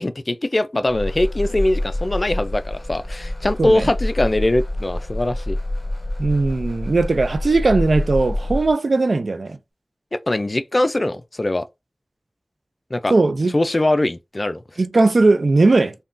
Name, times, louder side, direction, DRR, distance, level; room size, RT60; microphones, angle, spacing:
voice 1, 0.0-5.6 10.1-11.7 12.9-13.1 13.5-14.6, left 1 dB, 45° left, 0.3 m, -21 dB
sound 1, 0.9-8.7, left 1 dB, 25° left, 1.0 m, -27 dB
voice 2, 6.2-9.6 13.1-13.6 14.8-15.9, right 3 dB, 80° right, 0.3 m, -18 dB
3.6 x 2.2 x 2.5 m
wide cardioid pair, 40°, 0 cm